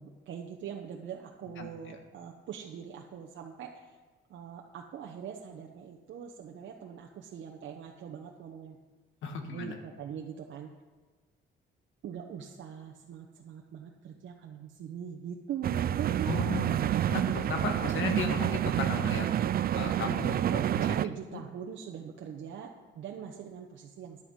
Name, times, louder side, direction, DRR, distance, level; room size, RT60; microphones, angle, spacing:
voice 1, 0.0-4.0 4.3-8.8 9.5-10.7 12.0-16.8 20.3-24.2, right 8 dB, 70° right, 1 dB, 1.0 m, -42 dB
voice 2, 9.2-9.8 16.3-16.8 17.1-19.3 19.7-20.8, left 5 dB, 80° left, 6 dB, 1.6 m, -35 dB
sound 1, 15.6-21.0, right 11 dB, 50° right, 0.4 m, -28 dB
11.0 x 8.7 x 5.3 m, 1.4 s
cardioid pair, 90°, 20 cm